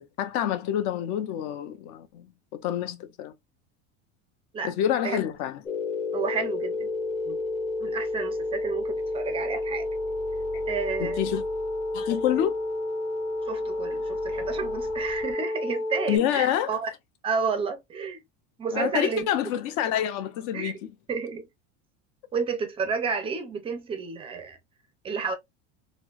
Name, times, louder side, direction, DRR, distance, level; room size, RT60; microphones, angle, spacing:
voice 1, 0.0-2.3 2.5-3.3 4.6-5.6 11.0-11.4 11.9-12.5 16.1-16.8 18.7-20.9, left 10 dB, 55° left, 0.7 m, -27 dB
sound 1, 5.7-16.2, left 2 dB, 20° left, 0.7 m, -30 dB
voice 2, 6.1-6.9 7.2-7.4 7.8-9.9 10.7-11.3 13.5-16.9 17.2-18.2 18.6-19.3 20.5-20.7 21.1-21.5 22.3-24.6 25.0-25.3, right 5 dB, 15° right, 0.5 m, -31 dB
4.3 x 2.1 x 2.4 m
cardioid pair, 160°, 36 cm